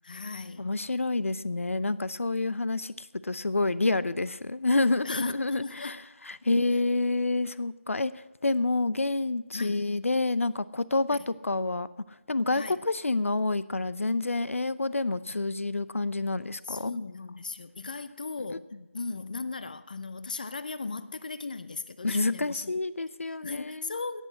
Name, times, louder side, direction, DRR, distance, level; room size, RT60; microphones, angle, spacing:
voice 1, 0.0-0.7 5.0-6.0 9.5-9.9 11.1-11.2 12.5-12.8 15.3-15.4 16.7-18.6 18.9-22.7 23.3-24.2, left 4 dB, 40° left, 14 dB, 0.6 m, -37 dB
voice 2, 0.6-16.9 22.0-23.9, left 2 dB, 80° left, 17 dB, 0.6 m, -28 dB
18.0 x 6.4 x 8.7 m, 1.1 s
figure-of-eight pair, 170°, 7 cm